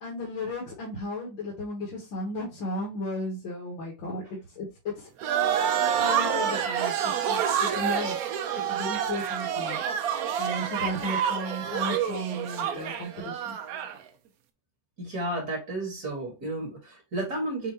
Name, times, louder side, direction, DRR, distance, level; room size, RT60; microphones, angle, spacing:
voice 1, 0.0-4.2 4.6-4.7 5.0-5.1 5.9-8.2 8.7-9.8 10.4-13.6, left 1 dB, 65° left, 2.0 m, -34 dB
sound 1, 5.2-14.0, right 8 dB, 75° right, 0.8 m, -28 dB
voice 2, 15.0-17.7, right 1 dB, 45° right, 2.3 m, -32 dB
7.2 x 2.6 x 2.8 m
omnidirectional pair, 2.3 m